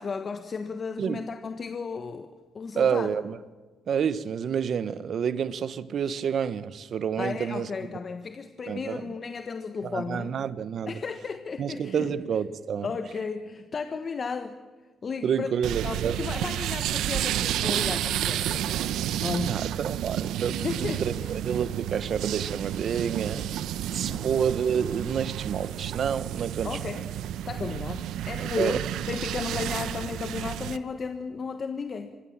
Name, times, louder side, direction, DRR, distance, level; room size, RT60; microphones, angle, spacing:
voice 1, 0.0-3.1 7.2-10.3 10.9-12.1 12.8-14.6 15.0-18.8 19.2-19.6 20.5-21.3 24.1-24.3 26.6-27.0 27.4-32.2, left 5 dB, 40° left, 1.3 m, -34 dB
voice 2, 2.8-3.4 3.9-7.7 8.7-9.0 9.8-10.9 11.6-12.9 15.2-16.2 19.5-23.5 23.9-27.0 28.4-28.8, right 7 dB, 55° right, 1.2 m, -29 dB
sound 1, 15.6-30.8, right 11 dB, 85° right, 0.9 m, -31 dB
25.0 x 22.5 x 7.4 m
cardioid pair, 110°, 0 cm